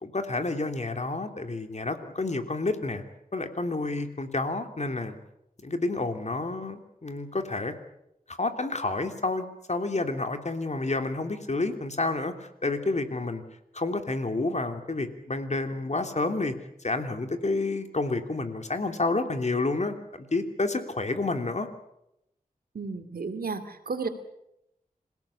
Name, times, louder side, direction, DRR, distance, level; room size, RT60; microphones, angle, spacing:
voice 1, 0.0-3.0 3.3-5.2 5.6-7.7 8.3-13.4 13.7-16.5 16.8-21.7, left 2 dB, 50° left, 7 dB, 3.0 m, -29 dB
voice 2, 22.7-24.1, right 4 dB, 85° right, 8 dB, 2.6 m, -33 dB
26.5 x 17.5 x 8.5 m, 0.82 s
wide cardioid pair, 65°, 15 cm